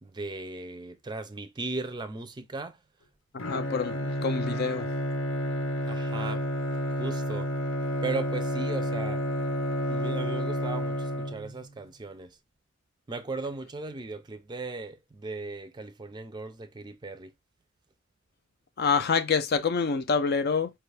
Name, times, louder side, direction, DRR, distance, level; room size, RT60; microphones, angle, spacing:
voice 1, 0.0-2.8 5.8-6.5 7.0-7.5 8.0-9.2 9.9-12.4 13.1-17.3, right 3 dB, 20° right, 0.4 m, -37 dB
Bowed string instrument, 3.4-11.7, equal, 85° left, 0.9 m, -30 dB
voice 2, 3.5-4.9 18.8-20.7, left 5 dB, 55° left, 0.5 m, -26 dB
4.6 x 2.4 x 3.3 m
head